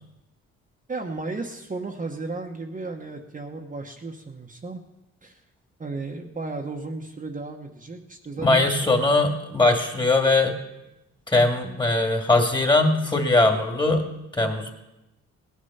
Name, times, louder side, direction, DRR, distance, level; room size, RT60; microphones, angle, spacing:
voice 1, 0.9-4.8 5.2-5.4 5.8-8.9, right 3 dB, 25° right, 1 dB, 1.3 m, -34 dB
voice 2, 8.4-10.5 11.3-14.0 14.3-14.7, left 2 dB, 15° left, 3 dB, 2.4 m, -20 dB
17.5 x 10.0 x 5.8 m, 0.96 s
cardioid pair, 90°, 30 cm